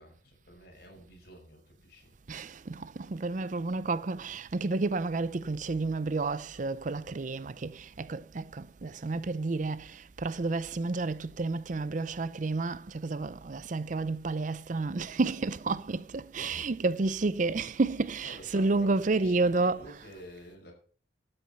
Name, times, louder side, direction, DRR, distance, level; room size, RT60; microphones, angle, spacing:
voice 1, 0.0-2.1 18.2-20.7, equal, 60° left, 5.6 m, -50 dB
voice 2, 2.3-19.8, right 3 dB, 45° right, 0.5 m, -30 dB
12.5 x 8.7 x 5.5 m
head